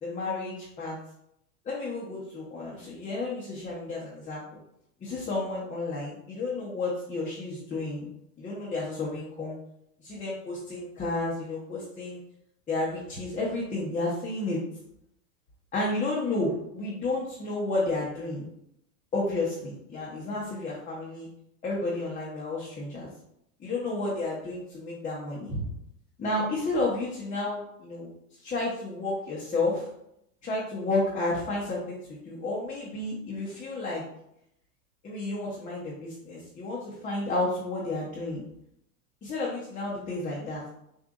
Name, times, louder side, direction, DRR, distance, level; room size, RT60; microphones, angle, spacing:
voice 1, 0.0-1.0 1.6-4.4 5.0-8.1 8.4-9.6 10.0-12.2 12.7-14.6 15.7-18.5 19.1-21.3 21.6-23.1 23.6-25.7 26.2-28.1 28.4-29.9 30.4-34.0 35.0-38.4 39.2-40.6, left 2 dB, 15° left, -6 dB, 0.9 m, -31 dB
6.7 x 2.7 x 2.5 m, 0.78 s
supercardioid pair, 125°, 45 cm